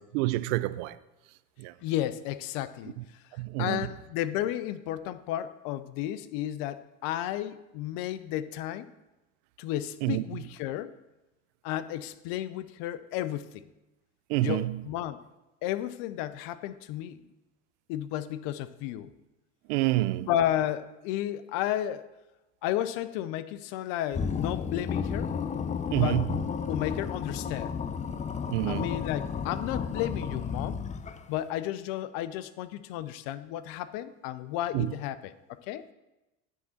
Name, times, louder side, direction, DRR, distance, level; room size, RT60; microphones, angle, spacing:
voice 1, 0.1-1.0 1.6-1.7 3.4-3.9 10.0-10.2 14.3-14.8 19.7-20.3 25.9-26.4 28.5-28.9 34.7-34.9, right 18 dB, 70° right, 0.5 m, -28 dB
voice 2, 1.8-3.0 3.6-8.9 9.6-10.9 11.6-13.6 14.4-15.2 15.6-17.2 17.9-19.1 20.3-22.1 22.6-25.3 26.0-26.2 26.7-27.8 28.7-30.8 31.3-35.3 35.7-35.8, left 12 dB, 60° left, 0.6 m, -33 dB
sound 1, 24.1-31.4, left 6 dB, 20° left, 0.4 m, -32 dB
9.3 x 3.7 x 5.7 m
hypercardioid pair, 75°, 38 cm